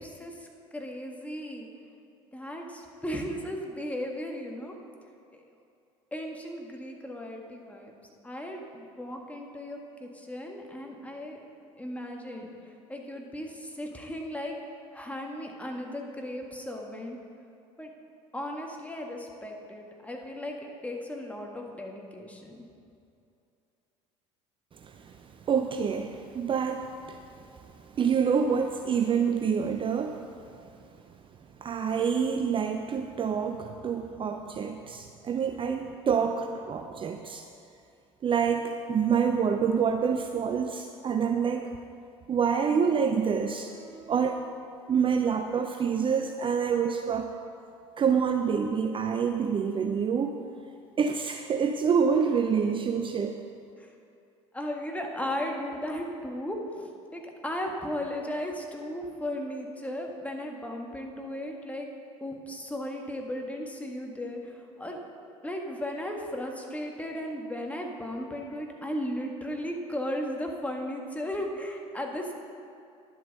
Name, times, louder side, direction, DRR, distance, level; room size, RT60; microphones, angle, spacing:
voice 1, 0.0-1.7 2.3-4.7 5.3-5.4 6.1-7.9 8.2-11.4 11.8-14.6 14.9-17.2 17.8-17.9 18.3-22.6 53.8-53.9 54.5-61.9 62.2-65.0 65.4-72.3, left 1 dB, 10° left, 1 dB, 1.7 m, -36 dB
voice 2, 24.8-30.3 31.6-37.4 38.2-41.7 42.3-44.4 44.9-47.3 48.0-50.4 51.0-53.4, right 6 dB, 30° right, 5 dB, 0.6 m, -27 dB
10.5 x 7.8 x 5.3 m, 2.6 s
hypercardioid pair, 70°, 16 cm